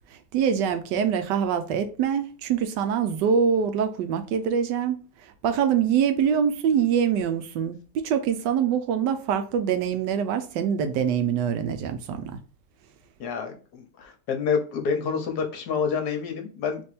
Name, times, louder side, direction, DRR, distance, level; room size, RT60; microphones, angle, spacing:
voice 1, 0.1-5.0 5.2-7.8 8.0-12.4, right 7 dB, 80° right, 1.2 m, -24 dB
voice 2, 13.2-16.8, left 6 dB, 65° left, 1.3 m, -28 dB
3.5 x 3.1 x 4.1 m
omnidirectional pair, 1.9 m